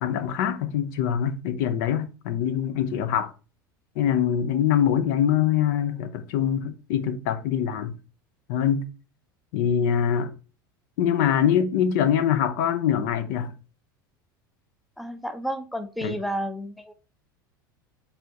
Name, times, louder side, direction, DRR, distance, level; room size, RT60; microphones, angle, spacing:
voice 1, 0.0-3.3 4.0-8.0 8.5-8.9 9.5-10.3 11.0-13.5 16.0-16.1, left 9 dB, 60° left, 0.5 m, -24 dB
voice 2, 15.0-16.9, equal, ahead, 0.5 m, -31 dB
4.3 x 3.4 x 2.7 m
hypercardioid pair, 80°, 11 cm